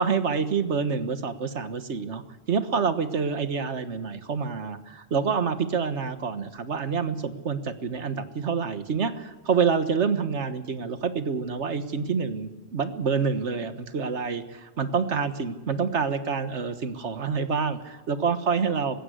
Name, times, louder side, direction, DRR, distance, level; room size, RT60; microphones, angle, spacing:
voice 1, 0.0-2.2 2.5-19.0, right 5 dB, 80° right, 10 dB, 1.7 m, -27 dB
20.0 x 16.5 x 8.1 m, 1.3 s
omnidirectional pair, 1.2 m